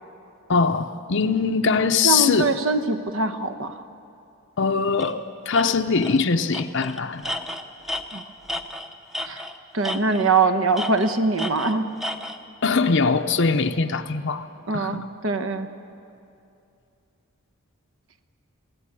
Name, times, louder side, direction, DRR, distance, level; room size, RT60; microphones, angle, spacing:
voice 1, 0.5-2.5 4.6-7.4 12.6-14.5 14.7-15.0, left 4 dB, 55° left, 6 dB, 0.7 m, -22 dB
voice 2, 2.0-3.7 8.1-8.2 9.3-9.4 9.7-11.9 14.7-15.7, right 3 dB, 60° right, 9 dB, 1.2 m, -23 dB
Tools, 5.0-5.1 5.5-5.6 6.0-6.2 6.5-9.6 9.8-10.4 10.7-12.4, left 1 dB, ahead, 0.7 m, -32 dB
22.5 x 16.5 x 9.9 m, 2.6 s
head